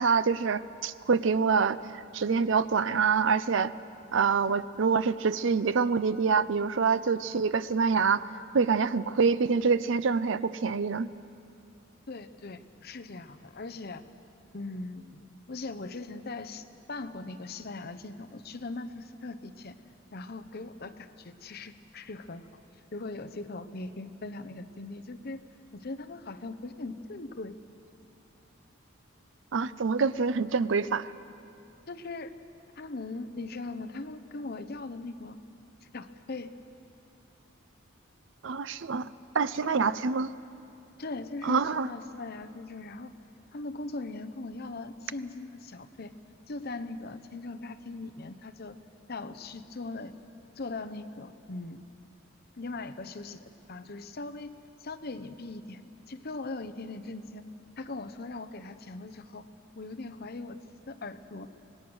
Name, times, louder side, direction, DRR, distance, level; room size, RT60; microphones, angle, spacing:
voice 1, 0.0-1.8 2.1-3.7 4.1-8.3 8.5-11.1 29.5-31.1 38.4-39.1 39.3-40.3 41.4-41.9, right 5 dB, 65° right, 15 dB, 0.5 m, -26 dB
voice 2, 12.1-14.0 14.5-19.7 20.1-22.4 22.9-25.4 25.7-27.6 31.9-32.3 32.8-35.4 35.9-36.5 39.8-40.0 41.0-43.1 43.5-46.1 46.5-48.8 49.1-50.1 50.6-51.8 52.6-54.5 54.8-55.8 56.1-57.4 57.8-59.5 59.8-60.6 60.9-61.5, left 3 dB, 50° left, 8 dB, 0.8 m, -40 dB
25.5 x 19.0 x 6.3 m, 2.6 s
head